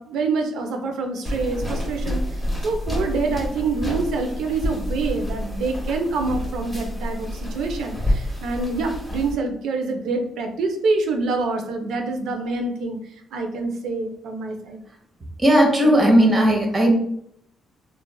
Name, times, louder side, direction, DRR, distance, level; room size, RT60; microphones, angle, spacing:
voice 1, 0.0-13.0 13.3-14.8 15.8-16.1, right 3 dB, 80° right, 4 dB, 0.5 m, -26 dB
sound 1, 1.2-9.3, equal, ahead, 1.0 m, -28 dB
voice 2, 15.4-17.0, right 1 dB, 30° right, 1 dB, 0.8 m, -16 dB
3.0 x 2.3 x 2.2 m, 0.71 s
cardioid pair, 90°, 0 cm